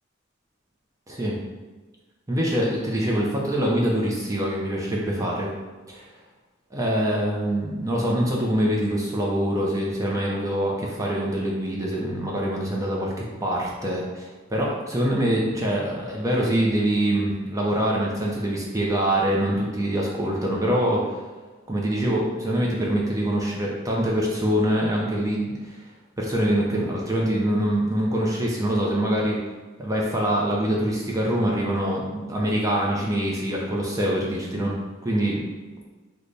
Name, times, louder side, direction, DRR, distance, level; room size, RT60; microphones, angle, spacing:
voice 1, 1.1-1.4 2.3-5.5 5.9-6.1 6.7-13.1 13.4-21.2 21.7-25.8 26.2-29.4 29.8-34.8 35.0-35.4, right 1 dB, 15° right, -3 dB, 0.5 m, -24 dB
3.3 x 2.2 x 3.9 m, 1.3 s
head